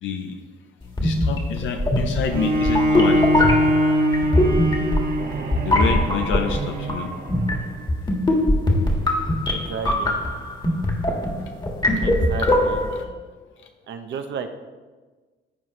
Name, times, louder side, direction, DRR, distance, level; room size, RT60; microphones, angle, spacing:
voice 1, 0.0-0.4 1.0-3.2 5.6-7.1 12.9-13.1, left 6 dB, 75° left, 5 dB, 0.7 m, -27 dB
sound 1, 0.9-13.0, left 1 dB, 25° left, 1.6 m, -22 dB
Bowed string instrument, 2.3-7.5, equal, 50° right, 1.3 m, -22 dB
voice 2, 9.5-10.1 12.0-12.9 13.9-14.5, right 6 dB, 65° right, 7 dB, 0.8 m, -33 dB
14.0 x 4.8 x 3.1 m, 1.3 s
cardioid pair, 90°, 20 cm